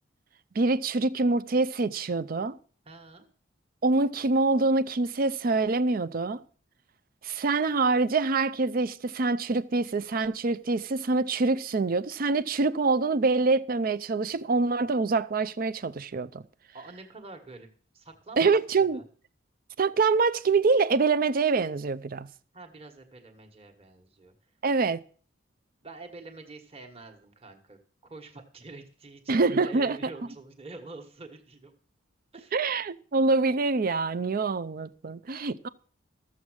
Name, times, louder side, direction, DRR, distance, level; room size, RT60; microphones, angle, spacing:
voice 1, 0.6-2.6 3.8-6.4 7.2-16.4 18.4-19.0 19.8-22.3 24.6-25.0 29.3-30.0 32.5-35.7, right 3 dB, 45° right, 0.5 m, -25 dB
voice 2, 2.8-3.3 16.7-17.7 17.9-19.0 22.5-24.3 25.8-31.7 32.3-32.6, right 3 dB, 30° right, 1.4 m, -46 dB
13.5 x 7.2 x 6.2 m
head